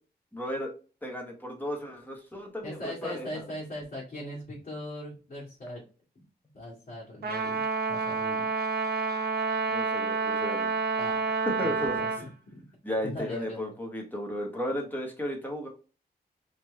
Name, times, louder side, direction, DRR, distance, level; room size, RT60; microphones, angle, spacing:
voice 1, 0.3-0.7 1.0-3.4 9.7-10.7 11.4-11.9 12.8-15.7, equal, 10° left, 0 dB, 1.3 m, -34 dB
voice 2, 2.6-5.8 6.2-6.3 6.5-7.6 7.9-8.5 11.0-11.3 11.6-12.3 13.0-13.7, left 1 dB, 50° left, -8 dB, 2.0 m, -40 dB
Trumpet, 7.2-12.2, right 4 dB, 70° right, 0.9 m, -29 dB
4.3 x 3.0 x 3.3 m, 0.35 s
wide cardioid pair, 145°, 17 cm